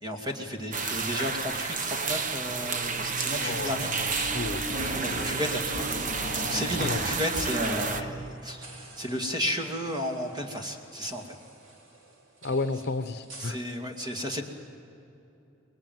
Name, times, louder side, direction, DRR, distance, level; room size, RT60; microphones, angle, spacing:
voice 1, 0.0-3.9 5.0-5.9 6.4-11.3 13.4-14.4, equal, 20° right, 3 dB, 2.3 m, -33 dB
sound 1, 0.7-8.0, right 4 dB, 40° right, 1.1 m, -31 dB
sound 2, 2.5-8.2, equal, 25° left, 4.1 m, -37 dB
voice 2, 3.3-3.8 4.3-4.7 6.8-7.0 12.4-13.6, left 3 dB, 55° left, 10 dB, 0.9 m, -31 dB
sound 3, 7.5-13.5, right 2 dB, 85° right, 3.7 m, -51 dB
25.5 x 21.0 x 9.1 m, 2.9 s
head